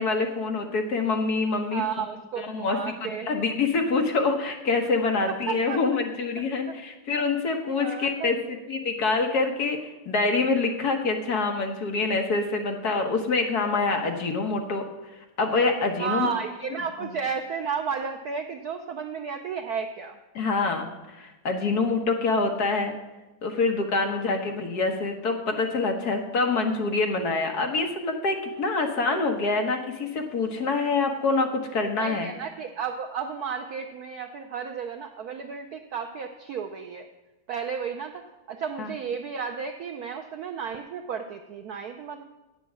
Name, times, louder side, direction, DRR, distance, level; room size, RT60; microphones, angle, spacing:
voice 1, 0.0-1.8 2.4-14.9 15.4-16.3 20.3-22.9 23.4-32.3 38.8-38.9, left 3 dB, 55° left, 4 dB, 1.4 m, -26 dB
voice 2, 1.7-3.4 5.3-5.8 7.1-7.3 7.6-8.3 16.0-20.2 24.0-24.4 32.0-37.1 37.5-42.2, right 6 dB, 70° right, 5 dB, 0.9 m, -33 dB
9.0 x 7.2 x 7.4 m, 1.1 s
omnidirectional pair, 2.2 m